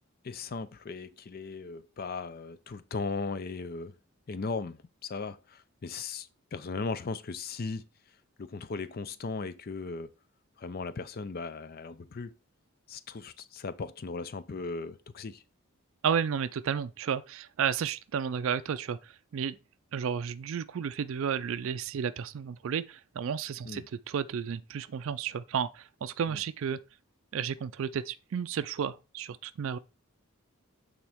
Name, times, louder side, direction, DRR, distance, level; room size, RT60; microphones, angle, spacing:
voice 1, 0.2-3.9 4.3-7.9 8.4-10.1 10.6-12.3 12.9-15.4 23.6-23.9 26.3-26.4, left 4 dB, 45° left, 0.4 m, -37 dB
voice 2, 16.0-19.6 19.9-26.8 27.3-29.8, right 7 dB, 60° right, 0.4 m, -32 dB
8.6 x 3.8 x 3.5 m
head